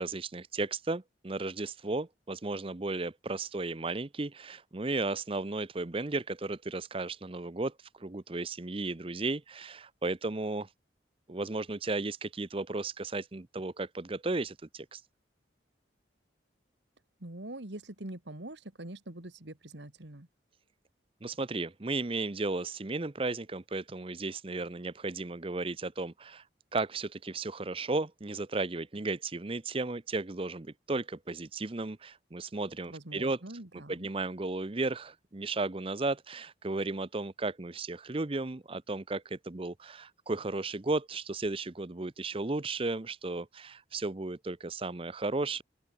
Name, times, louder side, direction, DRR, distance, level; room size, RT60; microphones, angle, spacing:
voice 1, 0.0-10.7 11.3-15.0 21.2-26.4 26.7-33.4 33.7-45.6, right 3 dB, 30° right, 0.7 m, -34 dB
voice 2, 17.2-20.3 32.9-34.1, right 1 dB, 70° right, 2.4 m, -44 dB
open air
head